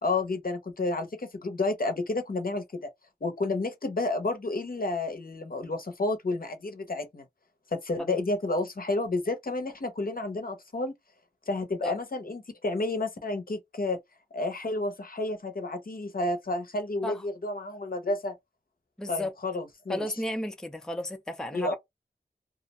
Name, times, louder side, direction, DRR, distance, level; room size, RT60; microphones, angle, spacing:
voice 1, 0.0-2.9 3.2-7.2 7.7-10.9 11.5-14.0 14.3-18.4 19.1-20.0 21.5-21.7, left 2 dB, 55° left, 0.6 m, -30 dB
voice 2, 19.0-19.3 19.9-21.7, left 1 dB, 5° left, 0.5 m, -33 dB
2.4 x 2.1 x 2.8 m
wide cardioid pair, 55°, 17 cm